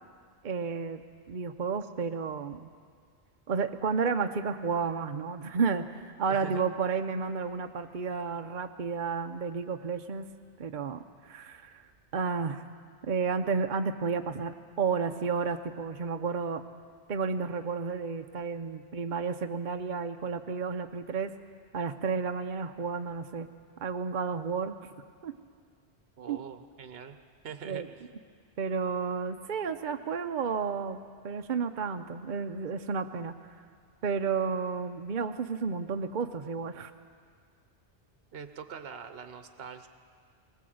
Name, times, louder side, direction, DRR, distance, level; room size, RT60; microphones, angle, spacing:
voice 1, 0.4-2.7 3.5-10.3 10.6-11.8 12.1-12.6 13.0-16.6 17.1-21.3 21.7-23.5 23.8-24.8 25.2-25.3 26.3-26.4 27.7-27.9 28.6-31.0 31.2-33.4 34.0-36.9, right 5 dB, 50° right, 7 dB, 0.8 m, -32 dB
voice 2, 6.3-6.6 26.2-27.2 27.4-28.1 38.3-39.9, right 7 dB, 65° right, 8 dB, 1.2 m, -43 dB
20.5 x 19.5 x 7.8 m, 2.1 s
omnidirectional pair, 1.1 m